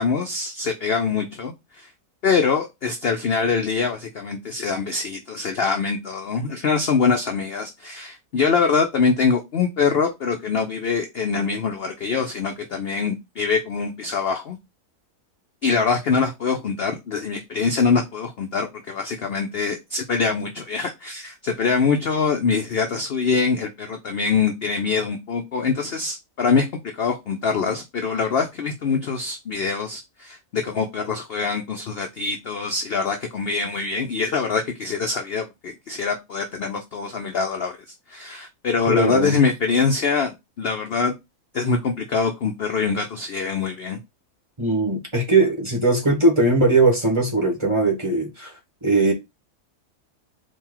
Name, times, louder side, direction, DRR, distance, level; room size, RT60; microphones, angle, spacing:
voice 1, 0.0-1.9 2.2-14.6 15.6-26.7 27.0-37.8 38.1-41.1 41.5-44.0, left 5 dB, 55° left, 0.7 m, -24 dB
voice 2, 38.9-39.4 44.6-48.5 48.8-49.1, right 2 dB, 20° right, 1.4 m, -19 dB
4.4 x 2.7 x 3.8 m
omnidirectional pair, 1.6 m